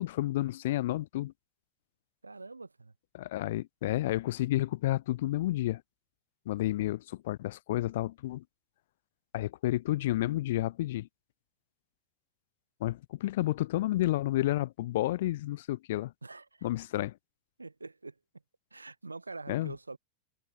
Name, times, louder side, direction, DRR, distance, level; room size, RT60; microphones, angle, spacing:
voice 1, 0.0-1.3 3.1-5.8 6.5-8.4 9.3-11.1 12.8-16.1 16.6-17.1 19.5-19.7, left 15 dB, 55° left, 0.5 m, -30 dB
voice 2, 2.2-2.9 16.2-16.7 17.6-18.1 18.7-20.0, right 3 dB, 80° right, 1.5 m, -45 dB
figure-of-eight pair, 90°, 0 cm